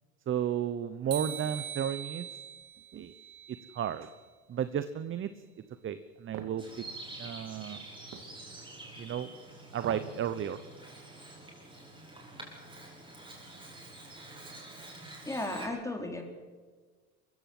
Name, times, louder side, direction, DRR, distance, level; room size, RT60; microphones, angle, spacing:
voice 1, 0.3-2.3 2.9-3.1 3.7-4.1 4.5-5.3 5.8-6.6 7.2-7.8 9.0-9.3 9.7-10.6, right 9 dB, 30° right, 12 dB, 1.0 m, -33 dB
sound 1, 1.1-4.2, right 9 dB, 90° right, 2.8 m, -42 dB
sound 2, 6.3-6.6 8.1-8.3 9.7-10.2 10.6-10.7, right 7 dB, 55° right, 2.6 m, -43 dB
Bird vocalization bird call bird song, 6.6-15.7, right 2 dB, 15° right, 6.6 m, -47 dB
voice 2, 15.3-16.2, left 1 dB, 10° left, 4 dB, 3.8 m, -35 dB
22.0 x 15.5 x 7.9 m, 1.5 s
supercardioid pair, 115°, 38 cm